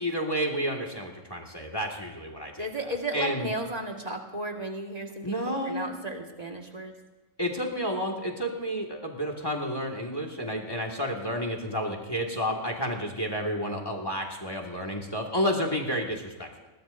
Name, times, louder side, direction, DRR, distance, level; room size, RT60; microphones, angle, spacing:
voice 1, 0.0-3.5 5.2-6.0 7.4-16.5, equal, 15° left, 2 dB, 1.9 m, -31 dB
voice 2, 2.6-5.4 5.6-6.9, right 1 dB, 30° right, 1 dB, 1.8 m, -34 dB
21.5 x 19.0 x 2.6 m, 1.2 s
omnidirectional pair, 1.4 m